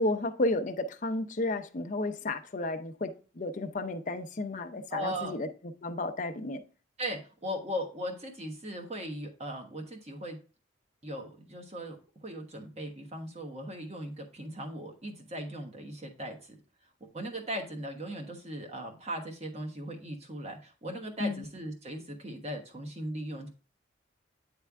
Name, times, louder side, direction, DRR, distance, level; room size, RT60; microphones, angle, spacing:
voice 1, 0.0-5.5 5.8-6.6 21.2-21.4, left 2 dB, 40° left, 0.6 m, -32 dB
voice 2, 4.9-5.3 7.0-10.4 11.0-16.5 17.0-23.5, equal, 30° right, 1.2 m, -38 dB
9.5 x 3.4 x 3.5 m
head